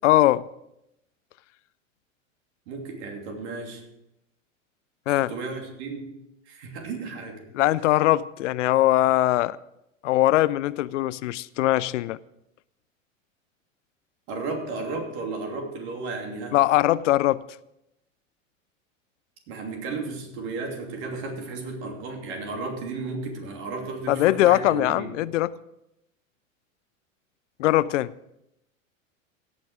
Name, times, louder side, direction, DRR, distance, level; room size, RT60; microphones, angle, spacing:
voice 1, 0.0-0.4 5.1-5.3 7.5-9.6 10.0-12.2 16.5-17.4 24.1-25.5 27.6-28.1, left 15 dB, 65° left, 0.5 m, -21 dB
voice 2, 2.7-3.8 5.3-6.1 6.5-7.4 14.3-16.6 19.5-25.1, right 3 dB, 55° right, 2.8 m, -34 dB
17.0 x 5.9 x 5.0 m
hypercardioid pair, 90°, 40 cm